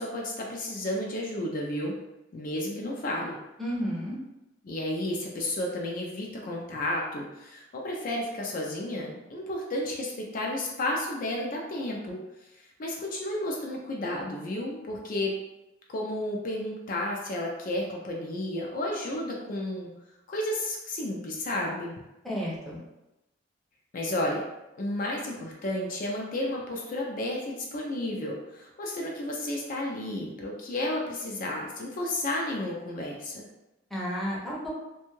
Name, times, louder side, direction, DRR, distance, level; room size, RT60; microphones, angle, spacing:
voice 1, 0.0-2.0 2.3-3.4 4.6-12.2 12.5-15.4 15.9-19.9 20.3-22.0 23.9-24.4 24.8-33.5, left 1 dB, 45° left, -1 dB, 0.4 m, -32 dB
voice 2, 3.6-4.1 22.2-22.8 33.9-34.7, equal, ahead, -6 dB, 0.6 m, -32 dB
2.6 x 2.2 x 3.0 m, 0.96 s
head